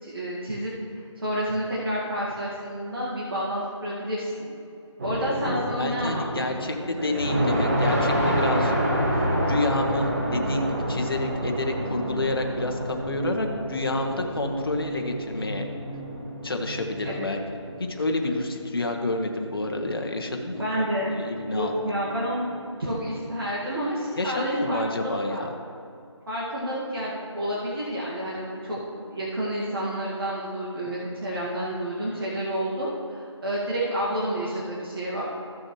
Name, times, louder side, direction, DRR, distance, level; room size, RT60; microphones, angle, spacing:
voice 1, 0.0-0.7 1.2-4.3 5.0-7.1 17.0-17.3 20.6-21.2 21.5-22.5 22.8-25.4 26.3-35.2, equal, 50° right, -7 dB, 1.9 m, -29 dB
sound 1, 5.0-6.6 6.9-23.4, equal, 30° right, 1.1 m, -29 dB
voice 2, 5.4-8.7 9.4-15.7 16.4-17.4 17.9-20.8 21.2-21.8 24.2-25.5, left 2 dB, 50° left, 3 dB, 1.2 m, -29 dB
15.0 x 6.2 x 3.1 m, 2.6 s
figure-of-eight pair, 170°, 16 cm